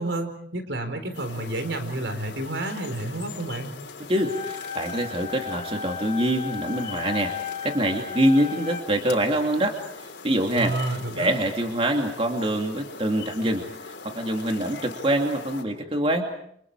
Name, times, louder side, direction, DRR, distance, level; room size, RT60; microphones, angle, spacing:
voice 1, 0.0-3.7 10.6-11.3, right 2 dB, 85° right, 7 dB, 4.5 m, -30 dB
sound 1, 1.1-15.6, left 4 dB, 80° left, 3.4 m, -42 dB
sound 2, 4.1-9.1, left 7 dB, 30° left, 2.9 m, -35 dB
voice 2, 4.1-7.4 7.6-16.3, right 1 dB, 30° right, 3 dB, 2.6 m, -25 dB
29.5 x 27.0 x 4.8 m, 0.68 s
head